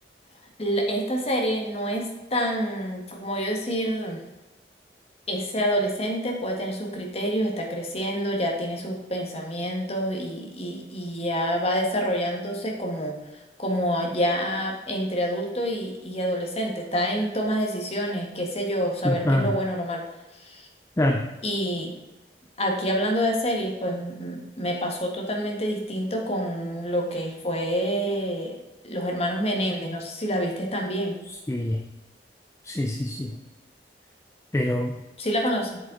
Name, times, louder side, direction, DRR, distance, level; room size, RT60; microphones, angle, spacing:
voice 1, 0.6-4.2 5.3-13.2 13.6-20.0 20.3-20.7 21.4-21.9 22.6-28.6 28.8-31.1 35.2-35.8, equal, 35° left, 1 dB, 1.6 m, -27 dB
voice 2, 19.0-19.5 21.0-21.3 31.5-31.8 32.6-33.4 34.5-34.9, left 1 dB, 15° left, 3 dB, 0.5 m, -24 dB
7.9 x 7.5 x 3.9 m, 1.0 s
head